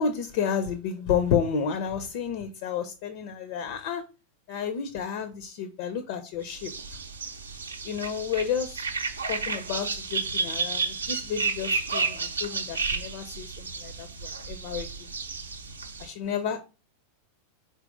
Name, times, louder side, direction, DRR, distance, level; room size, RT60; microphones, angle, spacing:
voice 1, 0.0-4.0 4.5-7.0 7.8-8.8 9.3-14.9 16.0-16.7, left 7 dB, 50° left, 0.5 m, -31 dB
sound 1, 6.6-16.1, right 4 dB, 75° right, 0.6 m, -32 dB
4.4 x 3.8 x 2.5 m
figure-of-eight pair, 90°, 0 cm